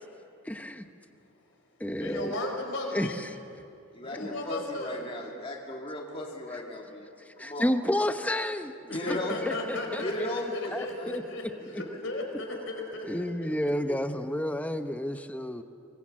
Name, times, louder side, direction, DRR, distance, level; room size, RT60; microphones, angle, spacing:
voice 1, 0.4-0.9 1.8-2.3 2.9-3.4 4.1-4.3 7.2-9.0 9.4-10.3 10.7-11.8 13.1-15.6, left 1 dB, 5° left, 8 dB, 0.8 m, -31 dB
voice 2, 2.0-3.2 4.0-5.1 8.9-13.0 13.6-13.7, left 2 dB, 60° left, 2 dB, 4.9 m, -35 dB
voice 3, 3.9-7.1 7.4-7.7 8.9-9.4 10.0-11.1 12.1-12.2 13.9-14.0, left 1 dB, 25° left, -1 dB, 2.3 m, -36 dB
25.0 x 23.5 x 7.6 m, 2.6 s
head